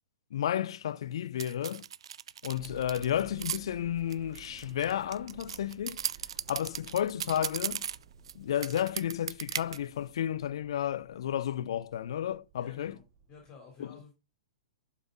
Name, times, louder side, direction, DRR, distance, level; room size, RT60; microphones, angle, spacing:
voice 1, 0.3-1.8 2.4-6.0 6.5-7.9 8.3-13.0 13.8-13.9, left 10 dB, 55° left, 0.6 m, -32 dB
sound 1, 1.4-3.6 4.1-8.3 8.6-9.8, right 9 dB, 60° right, 0.4 m, -37 dB
sound 2, 2.5-13.5, right 8 dB, 35° right, 1.1 m, -55 dB
voice 2, 12.5-13.0 13.3-14.1, left 5 dB, 30° left, 3.7 m, -51 dB
12.0 x 5.7 x 3.8 m
figure-of-eight pair, 110°, 3 cm